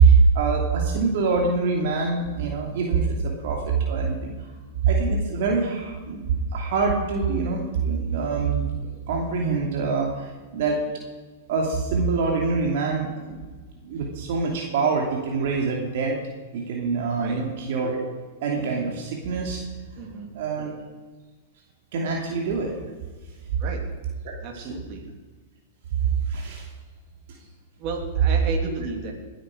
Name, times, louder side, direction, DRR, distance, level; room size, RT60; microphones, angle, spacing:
voice 1, 0.0-4.3 4.8-10.8 11.5-13.4 13.8-16.2 16.5-18.0 18.4-19.6 20.3-20.7 21.9-22.7 24.5-24.7 26.3-26.7, right 5 dB, 60° right, 0 dB, 2.8 m, -24 dB
voice 2, 20.0-20.3 23.6-23.8 24.4-25.1 27.8-29.1, right 3 dB, 45° right, 2 dB, 3.2 m, -33 dB
20.0 x 8.8 x 5.0 m, 1.4 s
hypercardioid pair, 115°, 0 cm